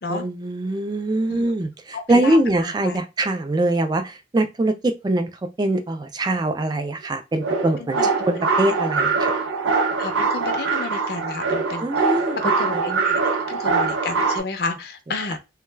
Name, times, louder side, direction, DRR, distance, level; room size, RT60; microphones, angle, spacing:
voice 1, 0.1-5.3 5.6-8.0 8.3-9.3 11.8-12.4 12.9-13.0, right 1 dB, 20° right, 0.3 m, -23 dB
voice 2, 1.9-2.4 2.6-3.0 7.8-8.1 10.0-12.1 12.4-15.4, left 3 dB, 55° left, 0.5 m, -31 dB
sound 1, 7.4-14.4, right 4 dB, 85° right, 0.6 m, -23 dB
2.2 x 2.0 x 3.2 m
head